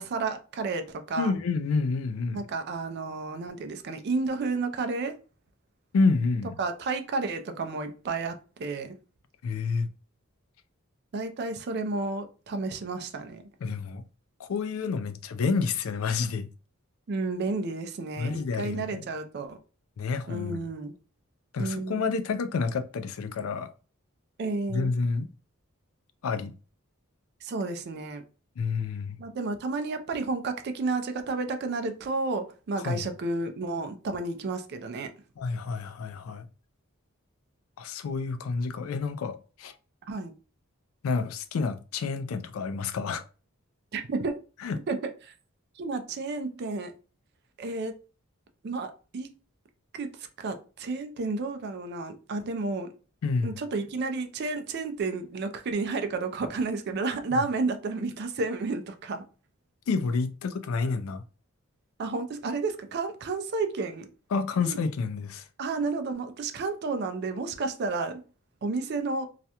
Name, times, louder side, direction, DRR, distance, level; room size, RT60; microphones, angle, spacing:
voice 1, 0.0-1.3 2.3-5.2 6.6-8.9 11.1-13.4 17.1-19.6 20.3-20.9 21.6-22.0 24.4-24.9 27.4-28.2 29.2-35.1 40.1-40.3 43.9-44.3 44.9-45.3 45.8-46.9 47.6-48.0 48.6-49.3 49.9-52.9 53.4-59.2 62.0-64.1 64.6-64.8 65.6-68.2 68.6-69.3, right 3 dB, 50° right, 0.4 m, -31 dB
voice 2, 1.2-2.4 5.9-6.6 9.4-9.9 13.6-14.0 14.4-16.5 18.2-19.1 20.0-20.6 21.5-23.7 24.7-25.3 26.2-26.5 28.6-29.2 32.8-33.0 35.4-36.4 37.8-39.7 41.0-43.2 44.6-44.8 53.2-53.5 57.3-57.4 59.9-61.2 64.3-65.5, left 4 dB, 80° left, 0.4 m, -29 dB
2.4 x 2.1 x 2.8 m
head